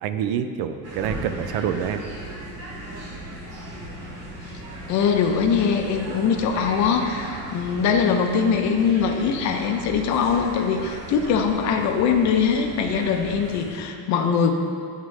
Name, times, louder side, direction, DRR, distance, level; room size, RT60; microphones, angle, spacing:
voice 1, 0.0-2.1, right 8 dB, 75° right, 9 dB, 0.5 m, -27 dB
sound 1, 0.8-13.8, right 1 dB, 40° right, 1.1 m, -37 dB
voice 2, 4.9-14.5, left 6 dB, 50° left, 5 dB, 0.5 m, -22 dB
9.6 x 3.7 x 3.2 m, 2.3 s
cardioid pair, 175°, 37 cm